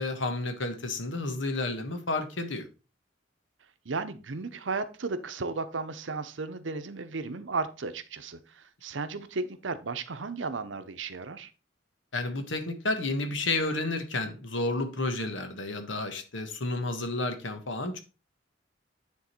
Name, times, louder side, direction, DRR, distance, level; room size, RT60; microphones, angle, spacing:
voice 1, 0.0-2.7 12.1-18.0, left 2 dB, 85° left, 1.4 m, -31 dB
voice 2, 3.8-11.5, right 4 dB, 80° right, 0.8 m, -34 dB
9.5 x 3.8 x 4.4 m
head